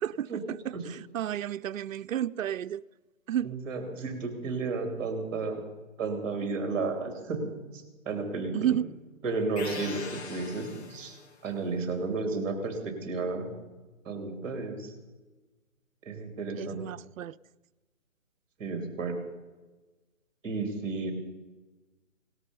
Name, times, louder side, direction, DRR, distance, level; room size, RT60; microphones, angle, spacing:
voice 1, 0.0-2.8 3.3-3.5 8.5-8.9 16.5-17.4, right 11 dB, 75° right, 0.5 m, -32 dB
voice 2, 3.4-5.6 6.0-7.5 8.0-8.8 9.2-11.2 11.4-13.5 14.0-14.9 16.0-16.8 18.6-19.2 20.4-21.1, right 3 dB, 20° right, 2.9 m, -32 dB
sound 1, 9.6-11.4, left 4 dB, 55° left, 1.9 m, -42 dB
18.0 x 13.0 x 5.4 m
hypercardioid pair, 170°, 41 cm